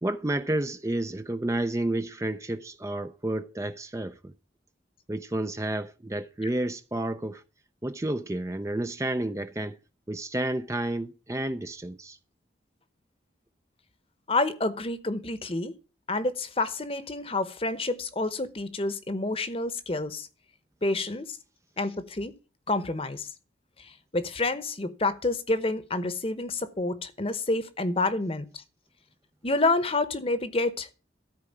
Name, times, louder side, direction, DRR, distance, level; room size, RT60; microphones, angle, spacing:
voice 1, 0.0-4.3 5.1-7.4 7.8-9.8 10.1-12.2, right 1 dB, 15° right, 0.4 m, -30 dB
voice 2, 14.3-15.7 16.1-20.3 20.8-21.4 21.8-22.3 22.7-23.3 23.8-28.6 29.4-30.9, left 2 dB, 30° left, 1.0 m, -28 dB
13.5 x 4.8 x 8.6 m
head